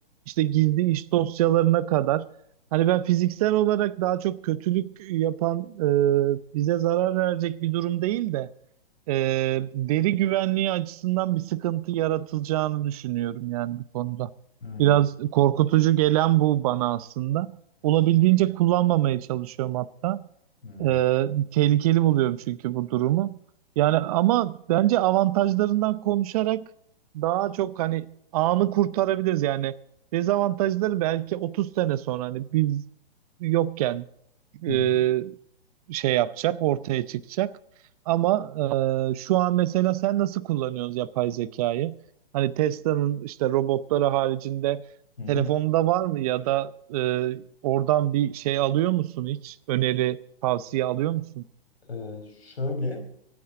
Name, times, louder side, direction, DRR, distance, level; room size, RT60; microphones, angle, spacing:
voice 1, 0.3-2.3 2.7-8.5 9.1-14.3 14.8-17.5 17.8-20.2 20.8-23.3 23.8-26.7 27.1-29.7 30.1-32.8 33.4-34.1 34.6-35.3 35.9-37.6 38.1-42.0 42.3-44.8 45.3-51.4, right 14 dB, 40° right, 0.7 m, -24 dB
voice 2, 14.6-15.0 20.6-21.0 34.7-35.1 42.7-42.8 45.2-45.5 51.9-53.0, left 3 dB, 85° left, 4.9 m, -33 dB
24.5 x 9.7 x 3.7 m
hypercardioid pair, 135°, 30 cm